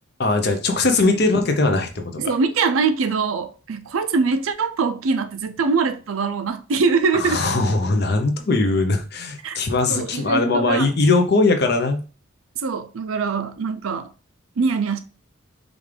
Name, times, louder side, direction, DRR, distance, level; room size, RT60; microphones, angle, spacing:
voice 1, 0.2-2.3 7.1-12.0, left 3 dB, 50° left, 0.7 m, -20 dB
voice 2, 2.2-7.4 9.4-9.6 9.9-10.9 12.6-14.1 14.6-15.0, right 4 dB, 85° right, 0.5 m, -23 dB
5.1 x 2.5 x 3.3 m
head